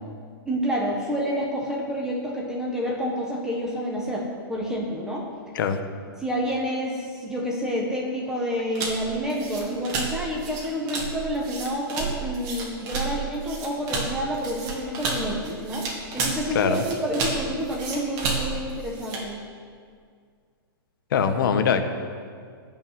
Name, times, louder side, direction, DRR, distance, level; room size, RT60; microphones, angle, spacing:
voice 1, 0.4-5.3 6.2-15.9 16.1-19.4, equal, 5° right, -2 dB, 1.4 m, -28 dB
sound 1, 8.8-19.3, right 4 dB, 30° right, 2.1 m, -31 dB
voice 2, 21.1-21.8, left 7 dB, 60° left, 7 dB, 1.3 m, -22 dB
15.0 x 5.5 x 9.4 m, 2.1 s
hypercardioid pair, 160°, 13 cm